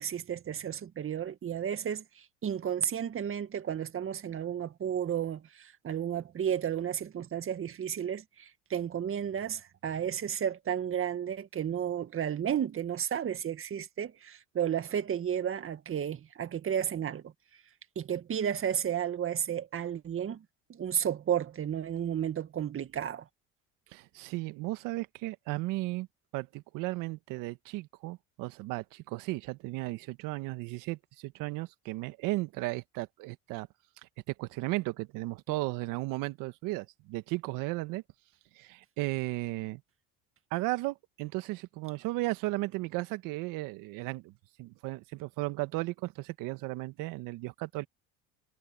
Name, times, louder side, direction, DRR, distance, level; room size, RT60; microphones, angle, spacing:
voice 1, 0.0-17.3 18.0-20.4 20.7-23.2, right 9 dB, 40° right, 2.0 m, -33 dB
voice 2, 23.9-26.1 26.3-33.7 34.4-38.0 38.6-39.8 40.5-44.3 44.6-47.9, right 20 dB, 70° right, 1.7 m, -35 dB
supercardioid pair, 85°, 33 cm